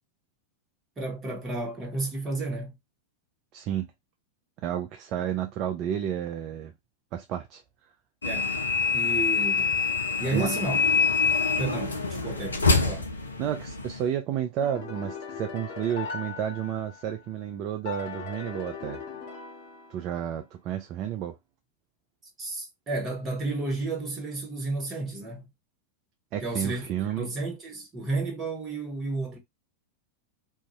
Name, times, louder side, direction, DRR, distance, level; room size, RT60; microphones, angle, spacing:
voice 1, 1.0-2.7 8.2-8.5 8.9-9.7 10.2-10.8 11.6-13.1 22.4-25.5 26.4-29.4, right 2 dB, 20° right, 1.2 m, -32 dB
voice 2, 3.5-3.9 4.6-6.7 7.1-7.6 10.3-10.5 13.4-19.0 19.9-21.3 26.3-27.3, right 10 dB, 40° right, 0.3 m, -31 dB
sound 1, 8.2-14.1, left 4 dB, 75° left, 0.4 m, -25 dB
sound 2, 14.6-17.2 17.9-20.3, left 5 dB, 50° left, 1.0 m, -39 dB
2.5 x 2.3 x 2.9 m
figure-of-eight pair, 90°, 0 cm